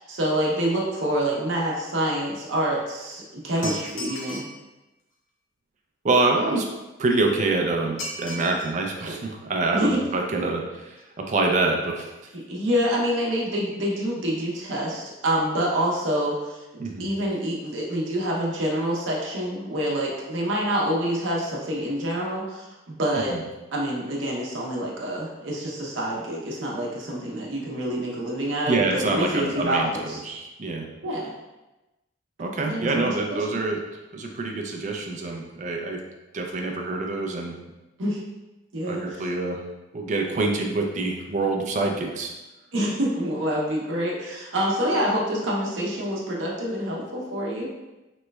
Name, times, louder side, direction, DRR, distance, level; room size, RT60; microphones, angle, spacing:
voice 1, 0.1-4.5 9.7-10.0 12.3-23.4 23.7-30.2 31.0-31.3 32.7-33.5 38.0-38.2 38.7-39.2 40.4-40.5 42.7-47.7, equal, 70° right, -3 dB, 0.7 m, -27 dB
sound 1, 3.6-4.6 8.0-8.7 9.1-9.2 10.1-10.2 10.5-10.6 10.8-11.0 11.3-11.4, equal, 90° left, 0.7 m, -36 dB
voice 2, 6.0-6.7 7.0-11.0 11.3-12.1 16.8-17.1 23.3-23.4 28.7-29.9 30.2-30.9 32.4-33.8 34.1-36.0 36.3-37.6 38.9-39.6 39.9-42.3, right 3 dB, 40° right, 2 dB, 0.4 m, -26 dB
3.1 x 3.0 x 2.3 m, 1.0 s
head